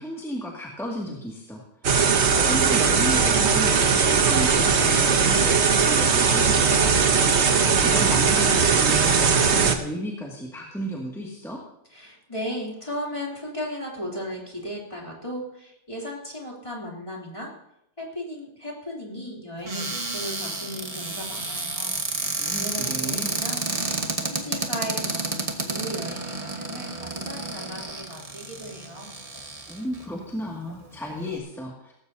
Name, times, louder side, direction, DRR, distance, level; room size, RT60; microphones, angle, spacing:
voice 1, 0.0-2.0 2.4-7.1 7.8-11.6 22.4-23.4 29.7-31.9, equal, ahead, -3 dB, 2.1 m, -33 dB
sound 1, 1.8-9.8, right 5 dB, 60° right, 1.3 m, -19 dB
voice 2, 11.9-17.5 18.0-22.3 22.6-23.9 24.2-29.1, equal, 25° left, -3 dB, 3.2 m, -36 dB
Cupboard open or close, 19.6-30.0 30.7-30.8 31.0-31.4, right 2 dB, 30° right, 1.4 m, -30 dB
18.0 x 15.0 x 2.8 m, 0.80 s
omnidirectional pair, 1.4 m